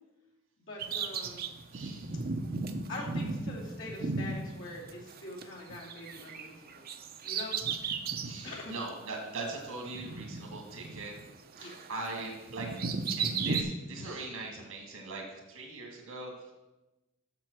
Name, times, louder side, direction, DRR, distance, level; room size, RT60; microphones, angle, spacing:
voice 1, 0.6-1.5 2.9-6.8 7.2-7.6 8.4-8.7 11.6-11.8, left 2 dB, 65° left, -5 dB, 2.7 m, -43 dB
Bird vocalization bird call bird song, 0.8-5.4 5.7-8.4 8.9-9.0 9.9-11.3 11.6-13.6, right 4 dB, 45° right, 0.7 m, -35 dB
voice 2, 1.7-2.1 8.2-11.1 11.6-12.8 13.2-16.5, right 3 dB, 85° right, 0 dB, 1.8 m, -41 dB
7.5 x 6.6 x 6.2 m, 1.1 s
head